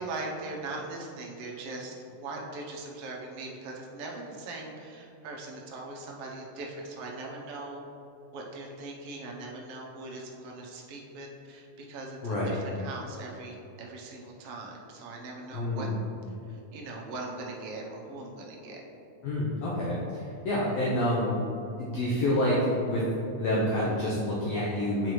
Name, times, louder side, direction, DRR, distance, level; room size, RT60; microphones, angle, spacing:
voice 1, 0.0-7.8 8.3-15.9 16.3-18.8, right 2 dB, 75° right, -1 dB, 1.4 m, -40 dB
voice 2, 12.2-12.6 15.5-15.9 19.2-21.4 21.8-25.1, left 1 dB, 70° left, -6 dB, 1.7 m, -28 dB
7.8 x 4.9 x 3.1 m, 2.8 s
omnidirectional pair, 3.6 m